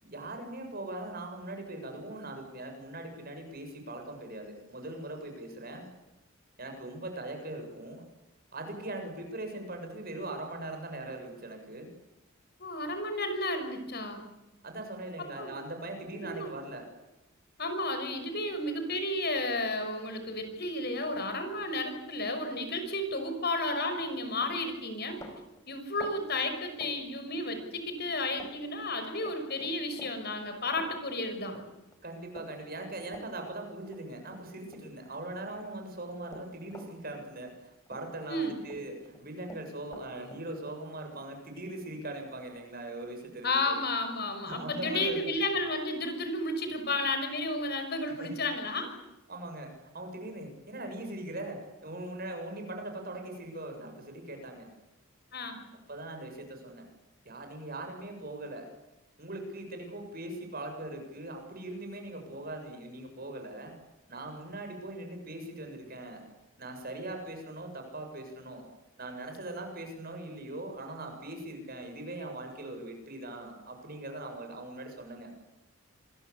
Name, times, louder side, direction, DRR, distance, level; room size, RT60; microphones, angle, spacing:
voice 1, 0.0-5.9 6.6-8.1 8.5-11.9 14.6-16.8 32.0-43.8 44.5-45.2 48.2-48.3 49.3-54.7 55.9-56.9 57.3-58.7 59.2-63.7 64.1-66.3 66.6-68.6 69.0-75.3, right 2 dB, 45° right, 4 dB, 7.2 m, -41 dB
voice 2, 12.6-14.2 15.4-15.5 16.2-16.5 17.6-25.2 25.7-31.6 38.3-38.6 43.4-48.9 55.3-55.6, left 2 dB, 50° left, 7 dB, 6.0 m, -32 dB
Run, 24.0-24.1 24.4-27.7 28.0-28.5 28.8-35.1 35.5-37.6 37.9-38.8 39.1-42.4, left 1 dB, 15° left, 5.4 m, -50 dB
27.0 x 22.0 x 8.4 m, 1.0 s
head